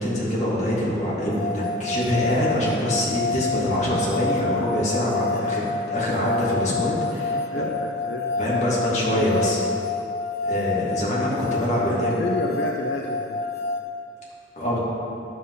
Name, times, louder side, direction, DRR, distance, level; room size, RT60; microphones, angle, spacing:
voice 1, 0.0-7.6 8.4-9.6 10.5-12.2 14.6-14.8, equal, 40° left, -6 dB, 2.5 m, -24 dB
sound 1, 1.3-13.8, left 4 dB, 55° left, 1.1 m, -28 dB
voice 2, 7.3-8.4 9.1-9.8 11.8-13.4, left 1 dB, 80° left, 0 dB, 0.7 m, -31 dB
11.0 x 7.6 x 4.0 m, 2.7 s
head